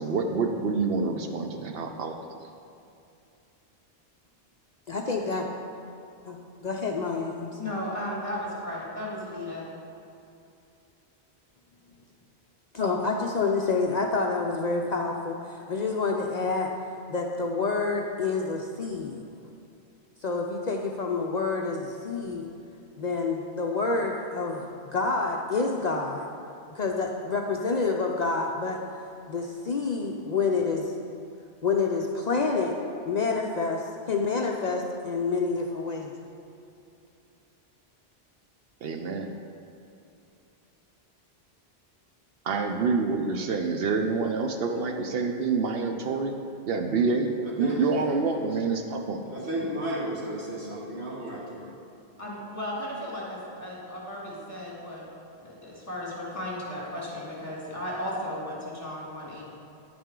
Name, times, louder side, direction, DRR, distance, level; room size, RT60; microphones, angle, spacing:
voice 1, 0.0-2.2 38.8-39.3 42.4-46.4 46.7-47.3 47.6-49.2, right 4 dB, 70° right, 4 dB, 0.8 m, -27 dB
voice 2, 4.9-5.4 6.3-7.6 12.7-16.7 17.1-19.2 20.2-22.5 23.0-26.3 26.7-28.8 29.3-30.8 31.6-32.8 33.1-36.1, left 4 dB, 50° left, 1 dB, 0.6 m, -28 dB
voice 3, 7.5-9.7 52.2-55.0 55.4-59.4, left 1 dB, 30° left, -6 dB, 2.7 m, -35 dB
voice 4, 47.6-47.9 49.3-51.7, right 1 dB, 90° right, -5 dB, 2.2 m, -33 dB
10.5 x 8.6 x 3.7 m, 2.6 s
omnidirectional pair, 1.1 m